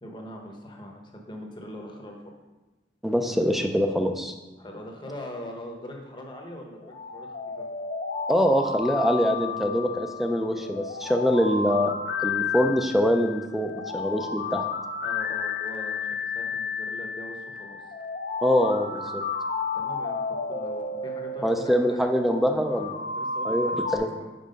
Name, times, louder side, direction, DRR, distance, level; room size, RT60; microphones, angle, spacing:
voice 1, 0.0-2.3 4.6-7.6 11.4-11.8 15.0-17.8 19.7-22.9 23.1-24.2, equal, 25° left, 1 dB, 0.9 m, -42 dB
voice 2, 3.0-4.3 8.3-11.9 12.2-14.6 18.4-19.2 21.4-22.9 23.4-24.1, equal, ahead, 5 dB, 0.4 m, -24 dB
sound 1, 6.8-24.0, left 5 dB, 50° left, 0.6 m, -32 dB
5.5 x 4.8 x 5.2 m, 1.1 s
head